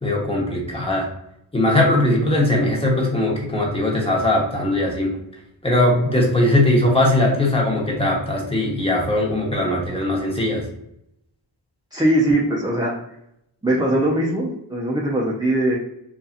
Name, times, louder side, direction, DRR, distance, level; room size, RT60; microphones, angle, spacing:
voice 1, 0.0-1.1 1.5-5.1 5.6-10.6, left 1 dB, 10° left, -2 dB, 0.9 m, -20 dB
voice 2, 11.9-12.9 13.6-15.8, right 1 dB, 10° right, -4 dB, 0.4 m, -20 dB
2.7 x 2.4 x 2.4 m, 0.79 s
cardioid pair, 60°, 47 cm